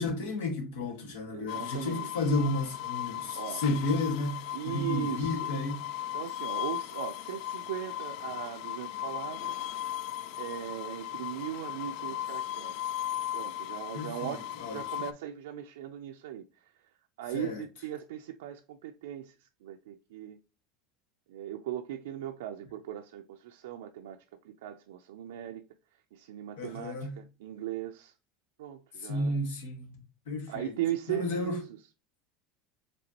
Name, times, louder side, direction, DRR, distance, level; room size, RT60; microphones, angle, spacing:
voice 1, 0.0-4.4 4.6-5.8 13.9-14.8 17.3-17.6 26.6-27.1 29.0-29.9 30.3-30.8 31.1-31.6, left 2 dB, 85° left, 1.5 m, -32 dB
voice 2, 1.3-2.1 3.3-3.6 4.5-5.5 6.1-9.6 10.4-12.9 13.3-16.7 17.2-20.4 21.3-24.2 24.4-25.6 26.1-28.1 28.6-29.4 30.5-31.6, right 11 dB, 90° right, 0.4 m, -38 dB
sound 1, 1.5-15.1, left 12 dB, 65° left, 0.3 m, -37 dB
5.1 x 3.3 x 2.9 m
supercardioid pair, 130°, 0 cm